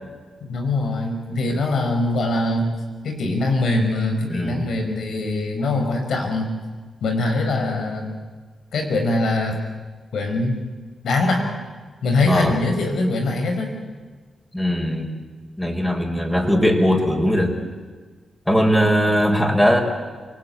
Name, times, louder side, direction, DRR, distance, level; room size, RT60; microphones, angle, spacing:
voice 1, 0.5-2.7 3.0-6.5 7.0-8.1 8.7-9.6 10.1-10.6 11.0-11.5 12.0-13.7, left 2 dB, 80° left, 3 dB, 5.8 m, -22 dB
voice 2, 4.3-4.7 12.3-12.6 14.5-15.1 15.6-17.5 18.5-19.8, equal, 10° left, 1 dB, 5.6 m, -19 dB
28.0 x 20.0 x 9.5 m, 1.4 s
cardioid pair, 55°, 0 cm